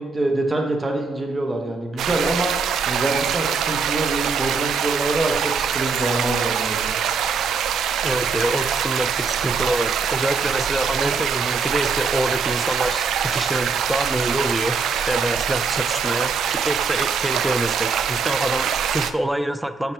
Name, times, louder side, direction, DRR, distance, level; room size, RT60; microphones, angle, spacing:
voice 1, 0.0-7.0, right 1 dB, 25° right, 3 dB, 1.0 m, -25 dB
sound 1, 2.0-19.1, right 9 dB, 75° right, 0.3 m, -24 dB
voice 2, 8.0-14.8 15.1-19.9, right 1 dB, 5° right, 11 dB, 0.4 m, -26 dB
5.9 x 5.8 x 3.4 m, 1.4 s
cardioid pair, 90°, 0 cm